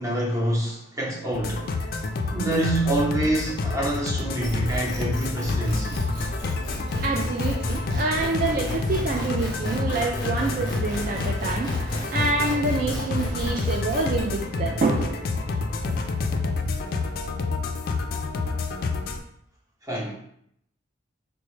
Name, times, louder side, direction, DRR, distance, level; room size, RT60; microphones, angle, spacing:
voice 1, 0.0-1.7 2.3-6.0 19.8-20.1, right 1 dB, 15° right, -3 dB, 0.8 m, -26 dB
sound 1, 1.3-19.2, left 3 dB, 50° left, 0.3 m, -29 dB
sound 2, 4.4-14.2, left 1 dB, 20° left, 0.7 m, -33 dB
voice 2, 6.7-15.6 15.8-16.0, right 3 dB, 45° right, 0 dB, 0.3 m, -27 dB
4.2 x 2.1 x 3.1 m, 0.72 s
head